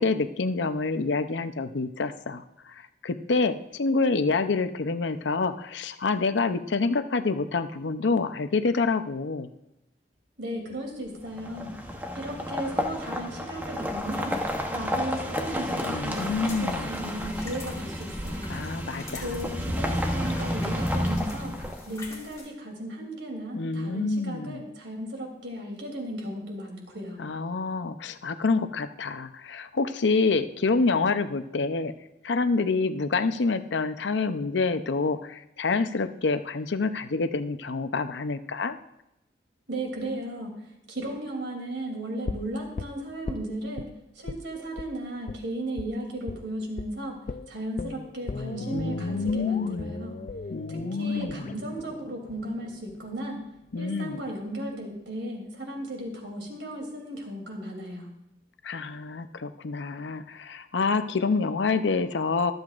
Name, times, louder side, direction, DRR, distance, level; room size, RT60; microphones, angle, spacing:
voice 1, 0.0-9.5 15.8-16.9 18.5-19.3 23.5-24.6 27.2-31.9 32.2-38.8 48.7-49.9 50.5-51.5 53.7-54.2 58.6-62.5, left 4 dB, 85° left, 10 dB, 0.6 m, -27 dB
voice 2, 10.4-11.7 12.1-14.4 14.7-18.6 19.2-21.6 21.9-27.2 39.7-40.5 40.9-43.9 44.2-47.2 47.5-50.2 50.7-53.4 53.8-58.1, right 1 dB, 85° right, 1 dB, 2.9 m, -35 dB
sound 1, 11.3-22.1, equal, 10° right, 0.9 m, -31 dB
sound 2, 16.1-22.5, left 3 dB, 20° left, 2.1 m, -47 dB
sound 3, 42.3-43.9 44.3-44.5 44.8-44.9 45.3-45.4 45.8-45.9 46.3-46.5 46.8-46.9 47.3-53.3 53.6-53.7, left 3 dB, 45° left, 0.4 m, -38 dB
23.5 x 7.9 x 2.5 m, 0.88 s
head